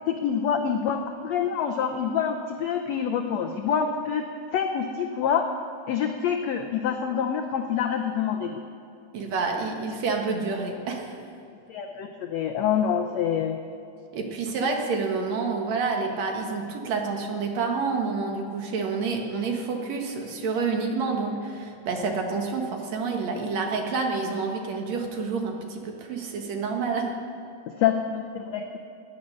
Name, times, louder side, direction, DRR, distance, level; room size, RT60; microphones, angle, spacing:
voice 1, 0.1-4.2 4.5-5.5 5.9-8.6 11.7-13.6 27.8-28.8, left 8 dB, 80° left, 4 dB, 1.5 m, -26 dB
voice 2, 9.1-11.1 14.1-27.1, right 4 dB, 55° right, 2 dB, 2.5 m, -28 dB
18.5 x 10.0 x 6.4 m, 2.6 s
omnidirectional pair, 4.0 m